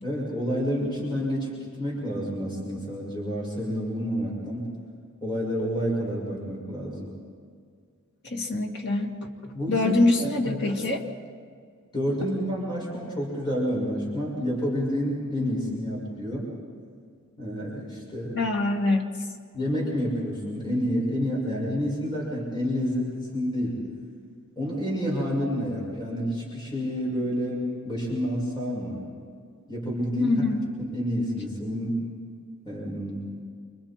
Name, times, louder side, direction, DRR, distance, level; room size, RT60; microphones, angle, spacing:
voice 1, 0.0-4.6 5.2-7.1 9.5-9.9 10.2-10.8 11.9-16.5 17.4-18.4 19.5-23.8 24.6-29.0 29.7-30.5 30.8-32.0 32.6-33.3, equal, 20° left, -4 dB, 6.2 m, -29 dB
voice 2, 8.2-9.1 9.7-11.0 18.3-19.1 30.2-30.7, left 2 dB, 50° left, 1 dB, 2.4 m, -24 dB
28.5 x 27.0 x 4.5 m, 2.1 s
head